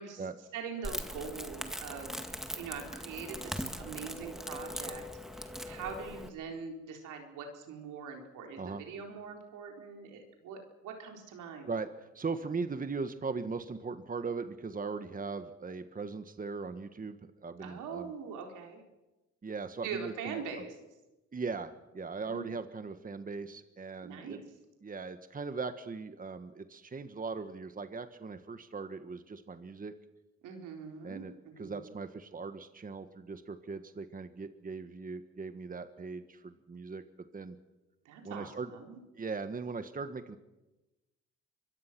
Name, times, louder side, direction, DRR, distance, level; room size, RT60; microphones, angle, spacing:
voice 1, 0.5-5.0 5.3-11.7 17.6-18.8 19.8-20.7 22.2-22.5 24.0-24.4 30.4-31.9 38.0-39.0, right 6 dB, 90° right, 2 dB, 4.2 m, -43 dB
Crackle, 0.8-6.3, equal, ahead, 1.9 m, -40 dB
voice 2, 11.6-18.1 19.4-20.6 21.3-24.4 24.8-29.9 31.0-37.0 37.3-37.6 38.2-38.7 39.1-40.4, right 4 dB, 30° right, 9 dB, 1.5 m, -39 dB
24.5 x 22.5 x 6.1 m, 1.0 s
cardioid pair, 90°, 30 cm